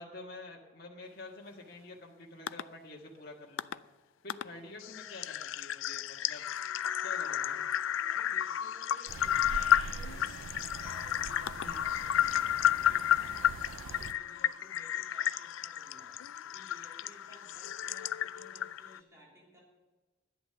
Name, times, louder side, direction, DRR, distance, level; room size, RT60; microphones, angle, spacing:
voice 1, 0.0-3.8 4.2-6.4 7.0-7.6 11.6-11.8, left 2 dB, 55° left, -1 dB, 1.6 m, -48 dB
sound 1, 2.5-2.6 3.6-3.7 4.3-4.4 4.8-19.0, left 11 dB, 90° left, 0.4 m, -32 dB
voice 2, 8.1-10.5 10.8-16.1 16.4-19.6, equal, 15° right, -5 dB, 3.5 m, -58 dB
sound 2, 9.1-14.1, right 5 dB, 90° right, 0.4 m, -44 dB
11.0 x 10.0 x 6.8 m, 1.3 s
head